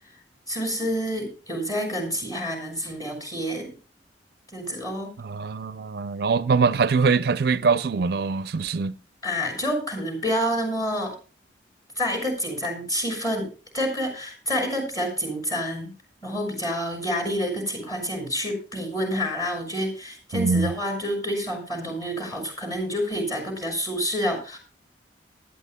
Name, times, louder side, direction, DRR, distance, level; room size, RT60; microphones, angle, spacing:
voice 1, 0.5-3.7 4.5-5.1 9.2-11.1 12.0-13.5 13.7-15.9 16.2-24.6, equal, 20° left, 5.9 m, -28 dB
voice 2, 5.2-8.9 20.3-20.7, right 4 dB, 60° right, 0.4 m, -23 dB
19.5 x 12.5 x 2.2 m
head